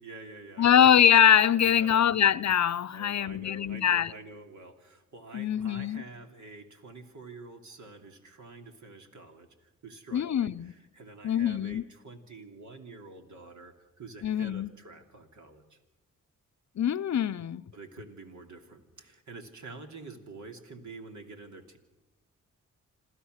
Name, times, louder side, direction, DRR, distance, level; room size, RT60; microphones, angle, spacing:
voice 1, 0.0-0.9 1.5-2.0 2.9-15.8 17.7-21.8, right 3 dB, 65° right, 3.0 m, -47 dB
voice 2, 0.6-4.1 5.3-6.0 10.1-10.7 11.2-11.8 14.2-14.7 16.8-17.6, left 9 dB, 60° left, 0.7 m, -23 dB
27.0 x 14.5 x 6.5 m
supercardioid pair, 50°, 32 cm